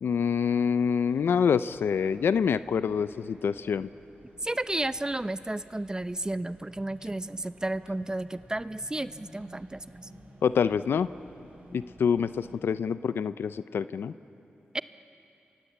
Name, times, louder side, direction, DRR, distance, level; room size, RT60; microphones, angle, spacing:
voice 1, 0.0-3.9 10.4-11.1 11.7-14.1, left 6 dB, 85° left, 14 dB, 0.5 m, -26 dB
sound 1, 1.0-12.6, right 1 dB, 55° right, 7.9 m, -53 dB
voice 2, 4.4-9.8 14.7-14.8, right 1 dB, 20° right, 13 dB, 0.6 m, -32 dB
28.0 x 24.0 x 8.2 m, 2.9 s
cardioid pair, 60°, 4 cm